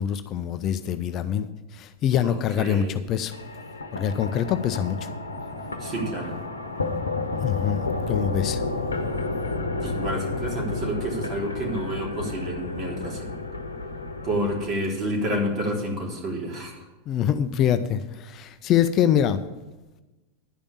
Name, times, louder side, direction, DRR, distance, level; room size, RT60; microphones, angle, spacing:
voice 1, 0.0-1.5 1.7-3.4 3.9-5.1 7.4-8.6 17.1-19.4, left 9 dB, 40° left, 11 dB, 0.6 m, -24 dB
voice 2, 2.2-2.9 5.8-6.4 9.8-13.3 14.2-16.8, right 1 dB, 35° right, -1 dB, 3.7 m, -29 dB
sound 1, 3.3-14.7, left 3 dB, 90° left, 1.0 m, -31 dB
11.5 x 5.2 x 8.5 m, 1.1 s
hypercardioid pair, 95°, 0 cm